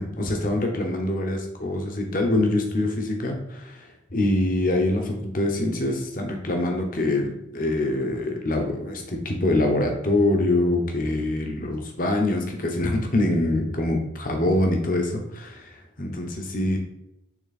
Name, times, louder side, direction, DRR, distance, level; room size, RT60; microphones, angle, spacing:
voice 1, 0.0-15.7 16.0-16.8, left 1 dB, 45° left, 3 dB, 1.1 m, -24 dB
6.1 x 3.7 x 4.2 m, 0.83 s
head